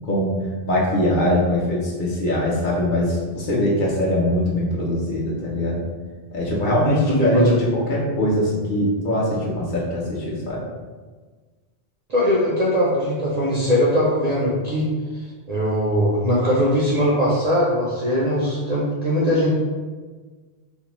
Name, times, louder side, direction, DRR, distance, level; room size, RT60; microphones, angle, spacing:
voice 1, 0.1-5.8 6.3-10.6, left 1 dB, 55° left, -5 dB, 0.7 m, -22 dB
voice 2, 6.9-7.5 12.1-14.8 15.5-19.5, equal, 55° right, -6 dB, 0.5 m, -20 dB
2.6 x 2.1 x 3.0 m, 1.4 s
omnidirectional pair, 1.1 m